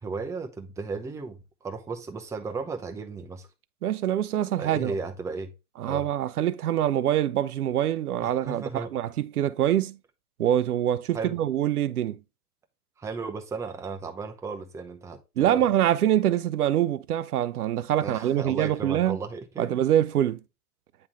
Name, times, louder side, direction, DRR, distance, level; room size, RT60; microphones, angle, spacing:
voice 1, 0.0-3.5 4.6-5.5 5.8-6.1 8.2-8.9 11.1-11.4 13.0-15.6 18.0-19.7, right 4 dB, 5° right, 0.6 m, -35 dB
voice 2, 3.8-4.9 5.8-10.0 10.4-12.2 15.4-19.2 19.6-20.4, right 11 dB, 80° right, 0.5 m, -25 dB
8.7 x 3.6 x 3.0 m
figure-of-eight pair, 100°, 44 cm